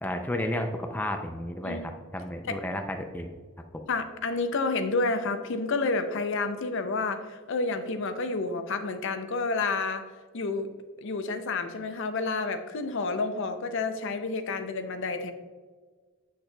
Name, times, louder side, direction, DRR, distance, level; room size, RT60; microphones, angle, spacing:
voice 1, 0.0-3.3, left 1 dB, 10° left, 4 dB, 0.4 m, -32 dB
voice 2, 3.9-10.0 10.3-10.7 11.0-15.3, left 3 dB, 60° left, 8 dB, 0.5 m, -29 dB
7.5 x 6.4 x 2.3 m, 1.5 s
head